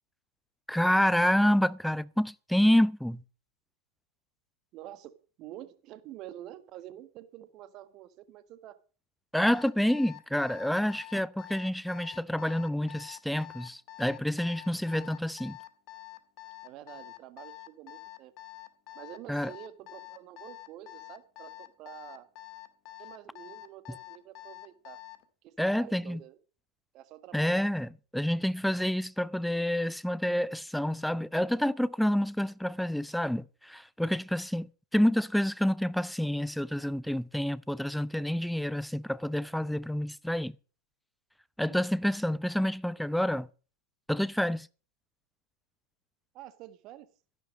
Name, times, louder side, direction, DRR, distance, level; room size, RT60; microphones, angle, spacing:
voice 1, 0.7-3.2 9.3-15.6 19.3-19.5 25.6-26.2 27.3-40.5 41.6-43.5 44.1-44.7, equal, ahead, 0.5 m, -28 dB
voice 2, 4.7-8.8 16.6-18.3 18.9-22.3 23.0-25.0 25.4-26.4 26.9-27.6 41.7-41.8 46.3-47.1, right 13 dB, 35° right, 1.5 m, -48 dB
Alarm, 9.4-25.2, left 18 dB, 40° left, 1.8 m, -47 dB
13.5 x 11.5 x 5.3 m
figure-of-eight pair, 90°, 0 cm